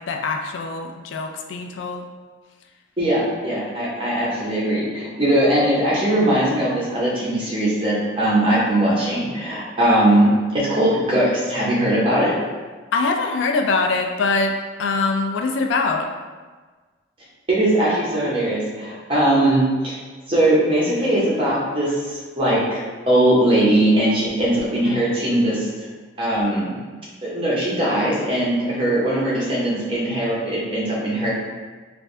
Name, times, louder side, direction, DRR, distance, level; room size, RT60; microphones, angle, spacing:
voice 1, 0.0-2.1 12.9-16.1 24.8-25.1, left 3 dB, 75° left, 3 dB, 0.3 m, -23 dB
voice 2, 3.0-10.3 10.5-12.3 17.5-19.9 20.3-25.7 26.2-26.8 27.2-31.3, right 1 dB, 30° right, -6 dB, 0.9 m, -20 dB
3.4 x 2.5 x 3.2 m, 1.4 s
head